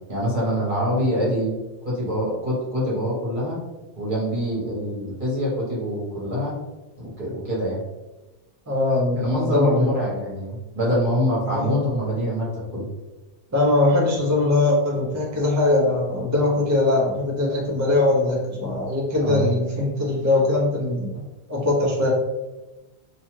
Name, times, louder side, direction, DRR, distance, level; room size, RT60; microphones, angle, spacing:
voice 1, 0.1-1.5 1.8-3.6 4.0-6.6 7.0-7.8 9.2-12.8 19.2-19.5, equal, 50° right, -6 dB, 1.2 m, -25 dB
voice 2, 8.7-9.9 11.4-11.8 13.5-21.2 21.5-22.1, left 2 dB, 25° right, -3 dB, 0.3 m, -21 dB
2.7 x 2.3 x 3.0 m, 1.1 s
omnidirectional pair, 1.2 m